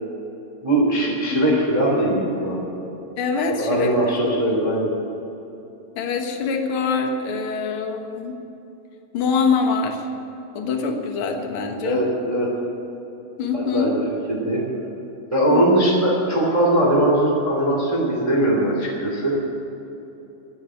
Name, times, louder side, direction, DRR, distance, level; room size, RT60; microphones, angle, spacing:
voice 1, 0.6-2.8 3.6-4.9 11.8-12.5 13.5-14.0 14.3-14.6 15.3-19.4, right 1 dB, 10° right, -3 dB, 2.1 m, -20 dB
voice 2, 1.3-1.6 3.2-3.9 4.2-4.3 5.9-8.4 9.1-10.1 10.5-12.1 13.4-13.9 15.5-15.8, left 5 dB, 65° left, 4 dB, 1.3 m, -24 dB
13.0 x 9.3 x 9.9 m, 3.0 s
omnidirectional pair, 4.4 m